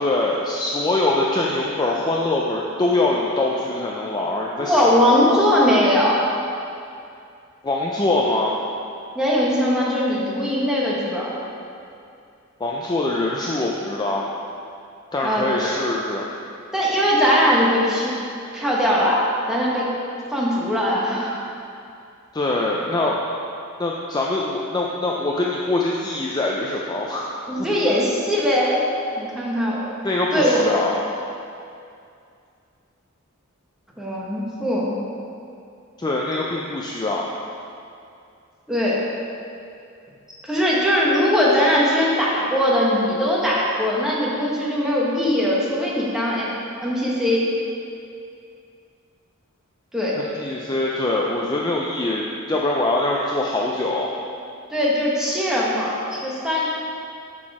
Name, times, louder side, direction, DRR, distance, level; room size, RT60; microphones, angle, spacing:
voice 1, 0.0-4.9 5.3-5.4 7.6-8.6 12.6-14.3 15.1-16.3 22.3-23.3 23.8-27.3 30.0-31.0 36.0-37.3 50.2-54.1, left 2 dB, 20° left, -3 dB, 0.4 m, -23 dB
voice 2, 4.6-6.2 9.1-11.3 15.2-15.7 16.7-18.1 18.5-19.2 19.5-19.9 20.3-21.4 27.5-28.9 29.1-29.9 30.3-30.6 34.0-35.0 38.7-39.0 40.5-46.5 46.8-47.4 49.9-50.2 54.7-56.6, equal, 5° right, -6 dB, 1.3 m, -20 dB
6.0 x 5.9 x 4.9 m, 2.5 s
head